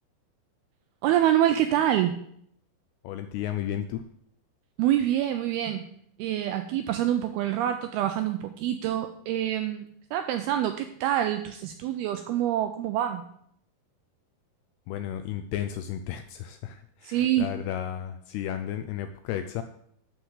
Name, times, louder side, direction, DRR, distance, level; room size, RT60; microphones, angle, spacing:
voice 1, 1.0-2.2 4.8-5.9 6.2-9.9 10.1-13.2 17.0-17.5, right 11 dB, 85° right, 7 dB, 2.2 m, -26 dB
voice 2, 3.0-4.0 14.9-19.6, left 10 dB, 85° left, 9 dB, 2.3 m, -33 dB
11.5 x 4.6 x 8.0 m, 0.70 s
omnidirectional pair, 5.1 m